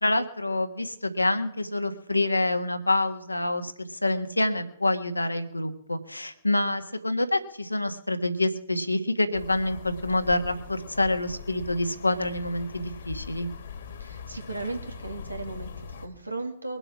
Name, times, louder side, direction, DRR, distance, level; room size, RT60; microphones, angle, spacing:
voice 1, 0.0-13.5, left 2 dB, 85° left, 8 dB, 1.6 m, -27 dB
sound 1, 9.3-16.1, left 6 dB, 55° left, 1.8 m, -41 dB
voice 2, 14.0-16.8, right 3 dB, 85° right, 4 dB, 2.4 m, -36 dB
22.0 x 8.0 x 6.0 m, 0.77 s
figure-of-eight pair, 120°, 0 cm